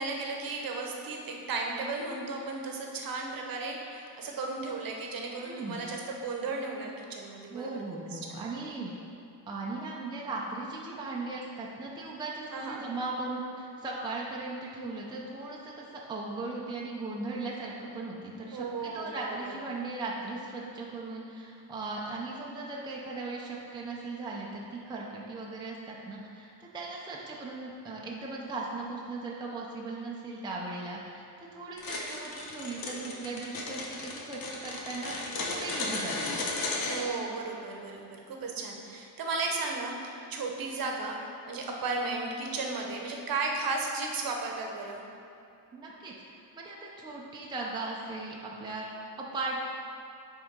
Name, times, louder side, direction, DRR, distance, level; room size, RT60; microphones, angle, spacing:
voice 1, 0.0-7.7 8.1-8.2 12.5-12.8 18.5-19.5 36.8-41.2 41.5-45.0, right 3 dB, 55° right, 1 dB, 0.9 m, -35 dB
voice 2, 5.4-5.8 7.5-8.9 9.5-31.3 31.5-36.4 45.7-49.7, right 3 dB, 10° right, -3 dB, 0.5 m, -38 dB
sound 1, 31.8-37.1, left 2 dB, 55° left, 1.0 m, -34 dB
8.1 x 3.6 x 5.1 m, 2.6 s
cardioid pair, 170°, 42 cm